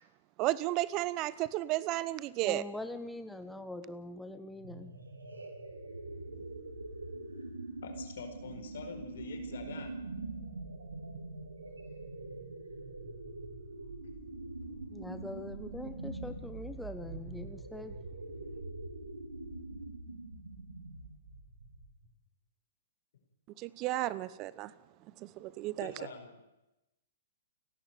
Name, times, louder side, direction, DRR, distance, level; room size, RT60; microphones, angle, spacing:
voice 1, 0.4-2.6 23.6-24.7 25.2-25.9, right 16 dB, 35° right, 19 dB, 0.8 m, -33 dB
voice 2, 2.4-4.9 14.9-17.9, left 1 dB, 5° left, 8 dB, 1.3 m, -43 dB
voice 3, 3.3-3.7 5.9-6.4 7.8-9.9 25.8-26.4, left 5 dB, 65° left, 7 dB, 4.7 m, -46 dB
sound 1, 4.5-22.1, right 2 dB, 90° right, 3.9 m, -44 dB
29.5 x 11.5 x 9.2 m, 0.95 s
hypercardioid pair, 120°, 0 cm